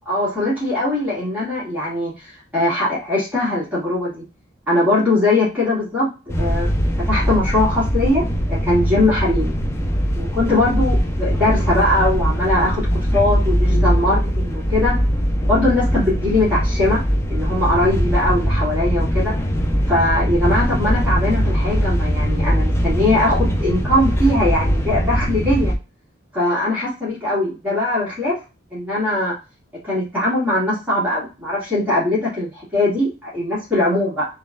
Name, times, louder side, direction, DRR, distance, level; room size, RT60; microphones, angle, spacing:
voice 1, 0.1-4.2 4.7-6.1 6.4-6.7 7.1-9.5 10.2-15.0 15.5-17.0 17.3-19.3 19.9-25.7 26.3-28.4 28.7-29.3 29.9-34.3, left 1 dB, 10° right, -8 dB, 1.9 m, -20 dB
sound 1, 6.3-25.8, equal, 15° left, 0.5 m, -20 dB
3.9 x 3.2 x 2.5 m, 0.30 s
head